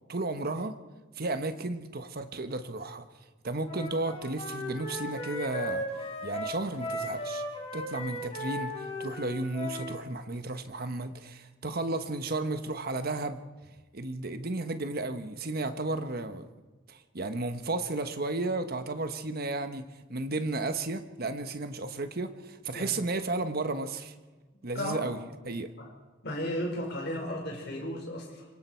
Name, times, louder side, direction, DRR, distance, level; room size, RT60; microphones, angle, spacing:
voice 1, 0.1-0.8 1.2-3.0 3.4-5.9 6.2-7.4 7.7-13.4 13.9-16.5 16.9-19.8 20.1-24.1 24.6-25.2 25.4-25.7, right 2 dB, 50° right, 9 dB, 1.2 m, -33 dB
Wind instrument woodwind instrument, 3.6-10.0, left 1 dB, 30° left, 5.0 m, -36 dB
voice 2, 24.7-25.1 25.8-25.9 26.2-28.5, equal, 55° left, 1 dB, 5.1 m, -34 dB
26.5 x 23.5 x 4.6 m, 1.3 s
head